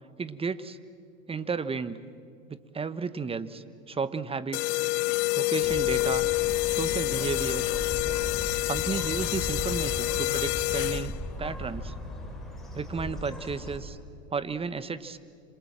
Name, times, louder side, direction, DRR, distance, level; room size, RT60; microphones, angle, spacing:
voice 1, 0.2-0.8 1.3-2.0 2.5-4.8 5.3-6.3 6.7-7.7 8.7-11.9 12.7-14.0 14.3-15.2, right 5 dB, 15° right, 14 dB, 1.1 m, -33 dB
sound 1, 4.5-11.3, left 21 dB, 55° left, 0.6 m, -28 dB
Bird, 5.6-13.8, left 1 dB, ahead, 5.9 m, -37 dB
27.0 x 26.5 x 7.6 m, 2.3 s
hypercardioid pair, 100°, 39 cm